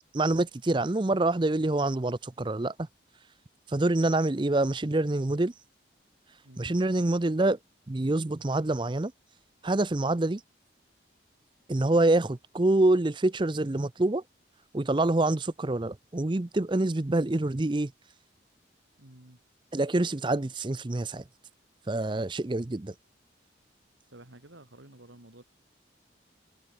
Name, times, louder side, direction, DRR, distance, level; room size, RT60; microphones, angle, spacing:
voice 1, 0.1-2.9 3.7-5.5 6.6-7.6 7.9-9.1 9.6-10.4 11.7-14.2 14.7-17.9 19.7-21.2 21.9-22.9, right 2 dB, 25° right, 0.6 m, -26 dB
voice 2, 6.4-6.7 19.0-19.4 24.1-25.4, right 1 dB, 80° right, 2.8 m, -51 dB
head